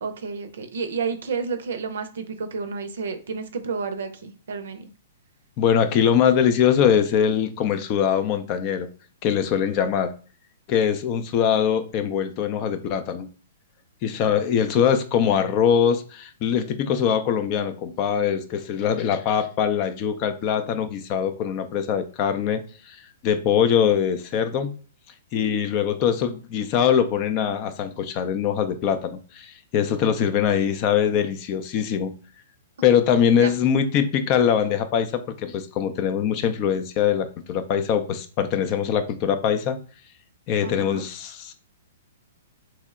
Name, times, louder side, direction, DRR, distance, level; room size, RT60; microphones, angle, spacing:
voice 1, 0.0-4.9 33.3-33.5 40.6-41.0, right 5 dB, 70° right, 0.5 m, -31 dB
voice 2, 5.6-8.9 9.2-10.1 10.7-13.3 14.0-23.0 23.2-24.7 25.3-32.1 32.8-39.8 40.5-41.5, left 8 dB, 40° left, 0.4 m, -22 dB
2.9 x 2.1 x 3.5 m
hypercardioid pair, 130°, 0 cm